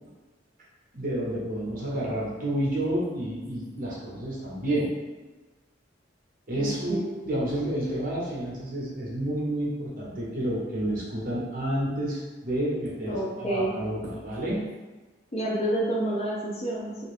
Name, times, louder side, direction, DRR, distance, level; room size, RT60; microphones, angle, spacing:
voice 1, 0.9-4.9 6.5-14.6, right 1 dB, 50° right, -6 dB, 0.9 m, -30 dB
voice 2, 6.5-7.0 13.1-13.7 15.3-17.1, right 1 dB, 35° left, -3 dB, 0.6 m, -29 dB
2.6 x 2.3 x 3.3 m, 1.2 s
head